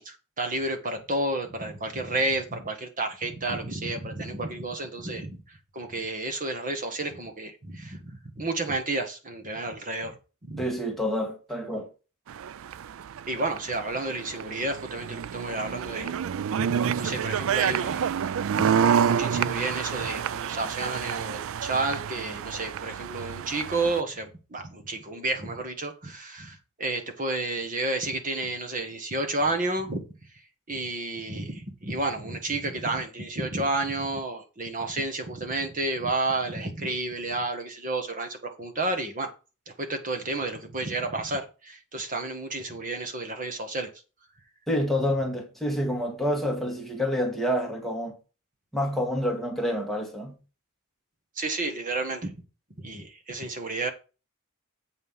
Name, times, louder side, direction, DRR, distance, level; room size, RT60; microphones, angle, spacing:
voice 1, 0.0-10.2 10.4-10.6 13.3-16.1 16.5-18.2 18.5-30.0 30.7-39.3 39.8-43.9 51.4-52.3 52.8-53.9, right 2 dB, 35° right, 1.7 m, -31 dB
voice 2, 10.6-11.9 44.7-48.1 48.7-50.4, equal, ahead, 1.8 m, -28 dB
sound 1, 12.3-24.0, right 8 dB, 65° right, 0.4 m, -28 dB
8.0 x 5.4 x 5.7 m
head